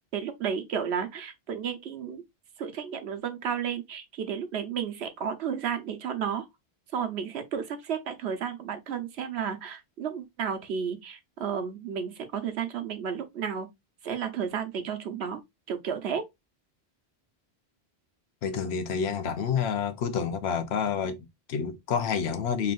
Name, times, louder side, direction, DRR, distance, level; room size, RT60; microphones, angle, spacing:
voice 1, 0.1-2.2 2.6-6.5 6.9-13.7 14.0-15.4 15.7-16.2, right 7 dB, 90° right, 1.0 m, -32 dB
voice 2, 18.4-22.7, left 7 dB, 80° left, 0.9 m, -29 dB
3.8 x 3.4 x 2.4 m
omnidirectional pair, 1.1 m